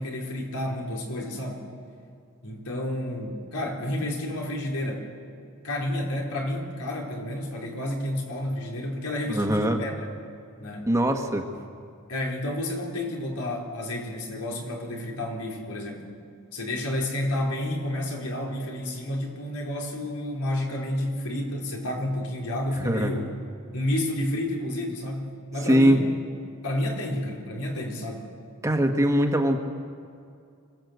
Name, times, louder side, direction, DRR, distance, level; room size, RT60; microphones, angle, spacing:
voice 1, 0.0-1.6 2.4-5.1 5.6-10.0 10.6-10.9 12.1-16.1 16.5-23.3 23.7-26.1 26.6-28.3, left 1 dB, 85° left, -1 dB, 4.3 m, -30 dB
voice 2, 9.3-9.8 10.9-11.4 22.8-23.2 25.6-26.0 28.6-29.6, equal, 15° right, 3 dB, 1.5 m, -22 dB
25.5 x 16.5 x 8.1 m, 2.4 s
head